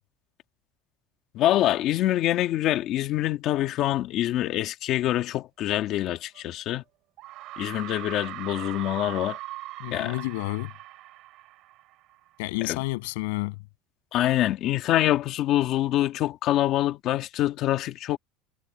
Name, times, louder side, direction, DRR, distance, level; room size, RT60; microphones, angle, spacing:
voice 1, 1.3-6.8 7.6-9.4 9.9-10.2 12.6-12.8 14.1-18.2, left 14 dB, 40° left, 1.8 m, -25 dB
sound 1, 6.4-6.5 7.2-12.4, right 17 dB, 45° right, 4.5 m, -40 dB
voice 2, 9.8-10.7 12.4-13.6, left 24 dB, 80° left, 7.8 m, -30 dB
cardioid pair, 170°, 0 cm